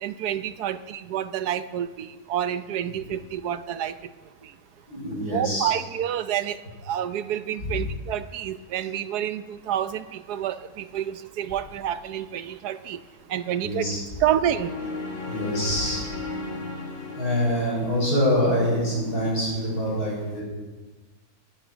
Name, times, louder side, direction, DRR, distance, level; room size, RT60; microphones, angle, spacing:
voice 1, 0.0-3.9 5.3-6.6 6.9-13.0 13.3-13.9 14.2-14.7, right 10 dB, 90° right, 12 dB, 1.3 m, -28 dB
voice 2, 4.9-5.7 7.6-7.7 13.6-14.0 15.3-16.0 17.1-20.4, equal, 80° left, -4 dB, 6.5 m, -25 dB
sound 1, 14.5-18.7, left 3 dB, 30° left, 1.6 m, -35 dB
14.5 x 9.8 x 6.2 m, 1.3 s
omnidirectional pair, 1.6 m